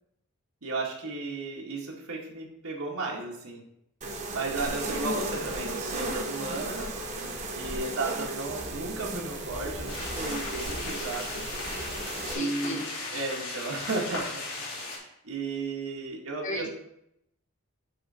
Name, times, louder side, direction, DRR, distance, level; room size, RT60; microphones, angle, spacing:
voice 1, 0.6-3.6 4.3-7.0 7.6-11.5 12.3-14.4 14.9-16.7, right 3 dB, 80° right, -2 dB, 1.8 m, -34 dB
sound 1, 4.0-12.3, right 2 dB, 35° right, 1.1 m, -35 dB
sound 2, 9.9-15.0, left 3 dB, 75° left, 3.0 m, -37 dB
voice 2, 12.2-12.9 16.4-16.7, left 2 dB, 35° left, 0 dB, 1.6 m, -36 dB
9.8 x 4.0 x 4.2 m, 0.79 s
head